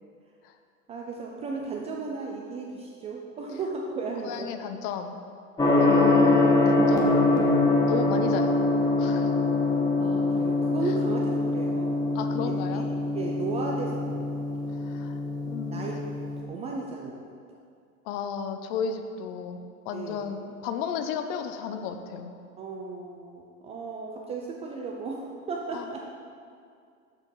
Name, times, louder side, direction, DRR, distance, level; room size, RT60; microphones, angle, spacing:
voice 1, 0.9-4.5 5.6-5.8 10.0-12.0 12.4-12.5 13.1-14.4 15.7-15.9 16.5-17.1 19.9-20.2 22.6-26.0, right 4 dB, 15° right, -1 dB, 0.3 m, -35 dB
voice 2, 4.2-5.2 5.8-7.3 7.8-8.6 9.0-9.3 12.1-12.9 14.8-15.2 15.5-15.8 18.1-22.3 25.7-25.8, left 7 dB, 40° left, 7 dB, 0.6 m, -34 dB
Gong, 5.6-16.4, left 2 dB, 10° left, 1.0 m, -24 dB
6.8 x 4.5 x 5.4 m, 2.3 s
figure-of-eight pair, 85°, 43 cm